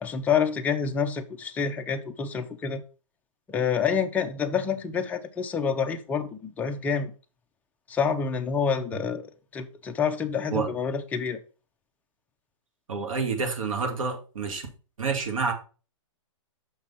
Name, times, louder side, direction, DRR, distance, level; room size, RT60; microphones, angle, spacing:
voice 1, 0.0-2.8 3.5-7.1 7.9-9.3 9.5-11.4, left 6 dB, 10° left, 0.5 m, -27 dB
voice 2, 12.9-14.7 15.0-15.5, right 5 dB, 80° right, 2.2 m, -28 dB
6.0 x 4.5 x 5.5 m
hypercardioid pair, 150°, 17 cm